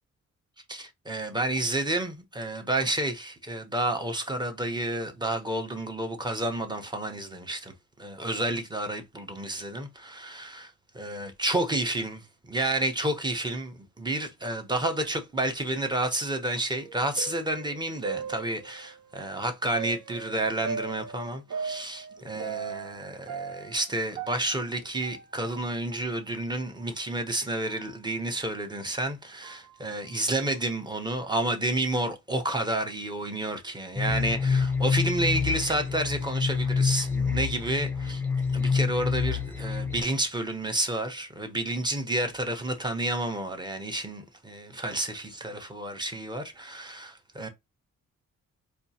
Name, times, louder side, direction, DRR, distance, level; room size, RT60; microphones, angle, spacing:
voice 1, 0.7-47.5, right 1 dB, 15° right, 0.8 m, -30 dB
sound 1, 16.8-19.0 19.7-23.0 23.3-25.6 25.9-26.0 26.8-26.9 27.6-27.8 28.5-28.6 29.4-29.7, right 5 dB, 65° right, 0.8 m, -38 dB
sound 2, 34.0-40.0, left 5 dB, 5° left, 0.5 m, -27 dB
4.3 x 2.4 x 2.8 m
cardioid pair, 110°, 30 cm